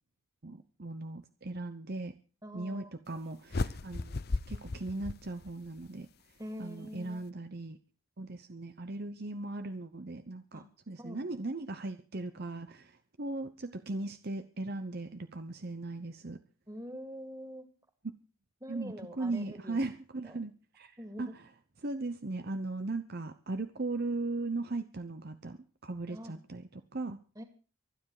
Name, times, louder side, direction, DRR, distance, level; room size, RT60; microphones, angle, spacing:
voice 1, 0.4-2.1 2.5-4.2 4.5-6.1 6.6-7.8 8.2-16.4 18.7-20.9 21.2-21.5 21.8-27.2, right 2 dB, 45° right, 10 dB, 0.8 m, -38 dB
voice 2, 2.4-3.2 6.4-7.2 10.5-10.7 11.0-11.2 16.7-17.6 18.6-19.8 20.2-20.4 21.0-21.3 26.1-26.4 27.4-27.5, equal, 15° right, 6 dB, 2.5 m, -45 dB
sound 1, 3.5-5.9, left 3 dB, 45° left, 0.7 m, -35 dB
24.5 x 10.0 x 4.9 m, 0.38 s
head